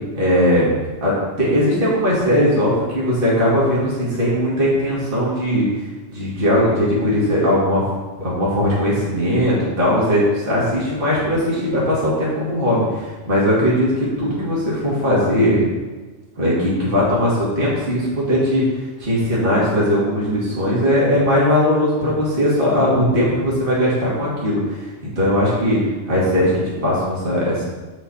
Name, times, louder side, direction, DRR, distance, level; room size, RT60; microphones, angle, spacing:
voice 1, 0.1-0.6 1.0-1.1 1.4-5.7 6.1-7.8 8.2-15.7 16.4-18.6 19.0-25.8 26.1-26.5 26.8-27.6, equal, 45° right, -7 dB, 2.3 m, -19 dB
7.8 x 5.9 x 4.2 m, 1.3 s
omnidirectional pair, 1.3 m